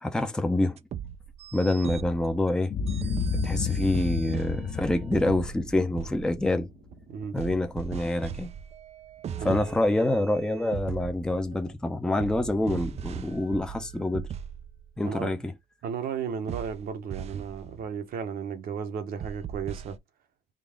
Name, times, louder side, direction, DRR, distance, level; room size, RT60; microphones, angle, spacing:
voice 1, 0.0-0.8 1.5-2.7 3.4-6.7 7.3-8.5 9.4-14.3 15.0-15.5, left 1 dB, 5° left, 0.6 m, -26 dB
sound 1, 0.8-11.8 12.2-15.0 16.5-17.9 19.2-20.0, right 8 dB, 40° right, 0.4 m, -39 dB
Boom, 2.7-7.0, left 4 dB, 50° left, 0.6 m, -31 dB
voice 2, 9.4-9.7 15.0-15.4 15.8-20.0, right 6 dB, 60° right, 0.9 m, -34 dB
3.8 x 2.4 x 3.5 m
cardioid pair, 110°, 17 cm